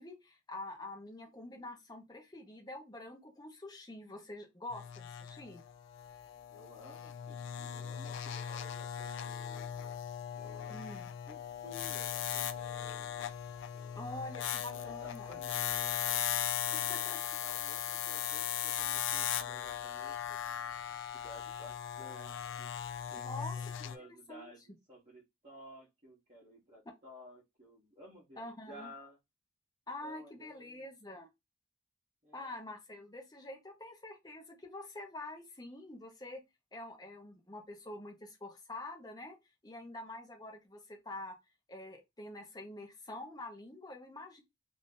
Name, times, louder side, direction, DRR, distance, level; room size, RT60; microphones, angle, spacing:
voice 1, 0.0-5.6 10.7-11.1 13.9-15.4 16.7-17.2 23.2-23.6 24.3-24.4 28.4-28.9 29.9-31.3 32.3-36.4 36.7-39.4 39.6-41.4 41.7-44.4, left 2 dB, 20° left, 0.7 m, -46 dB
sound 1, 4.7-24.0, left 10 dB, 60° left, 0.3 m, -38 dB
voice 2, 6.5-10.0 10.3-10.9 11.3-13.3 13.7-14.1 14.7-16.3 16.6-17.1 17.4-21.0 21.2-22.7 23.1-29.2 30.0-30.9 32.2-32.5, left 1 dB, 35° right, 0.9 m, -55 dB
2.6 x 2.5 x 3.6 m
head